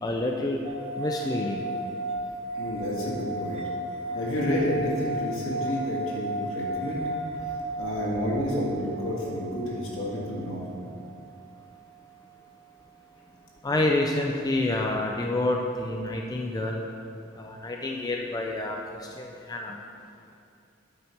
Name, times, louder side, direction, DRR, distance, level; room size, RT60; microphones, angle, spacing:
voice 1, 0.0-0.6 1.0-1.7 13.6-16.8 17.4-19.8, left 2 dB, 20° left, 1 dB, 0.4 m, -28 dB
sound 1, 0.6-12.0, right 2 dB, 30° right, 0.7 m, -35 dB
voice 2, 2.5-3.6 4.1-7.0 7.7-10.8, left 1 dB, 75° left, -5 dB, 1.9 m, -30 dB
8.5 x 5.6 x 4.5 m, 2.6 s
head